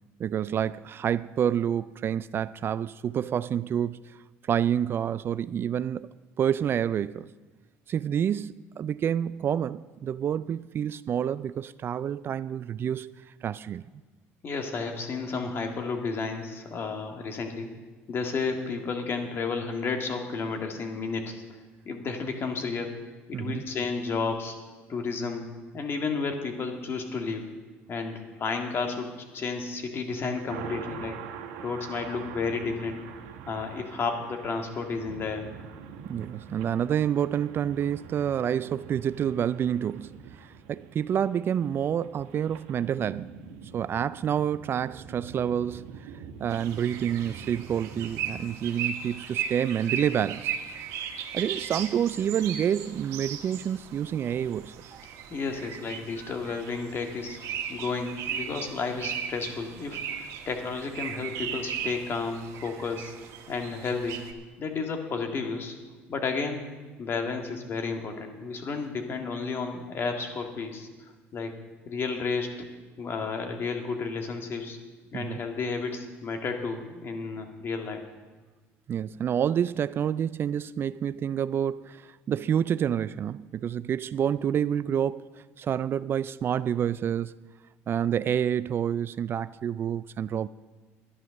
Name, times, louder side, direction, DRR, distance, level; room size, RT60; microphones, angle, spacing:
voice 1, 0.2-4.2 4.4-6.1 6.4-7.3 7.9-13.1 13.4-13.8 23.3-23.6 36.0-43.3 43.7-46.1 46.4-50.5 51.3-54.7 75.1-75.4 78.9-85.3 85.6-87.3 87.9-90.5, right 9 dB, 40° right, 0.3 m, -28 dB
voice 2, 14.4-17.7 18.1-21.6 21.9-22.9 23.3-24.6 24.9-25.5 25.7-27.5 27.9-29.1 29.3-33.0 33.5-35.5 55.3-57.4 57.7-63.1 63.5-64.2 64.6-65.8 66.1-66.6 67.0-71.5 71.9-72.7 73.0-74.8 75.1-78.0, left 4 dB, 45° left, 2.0 m, -32 dB
sound 1, 30.5-48.6, right 7 dB, 90° right, 1.3 m, -44 dB
sound 2, 46.5-64.3, right 8 dB, 65° right, 1.4 m, -37 dB
11.0 x 11.0 x 6.5 m
supercardioid pair, 90°, 6 cm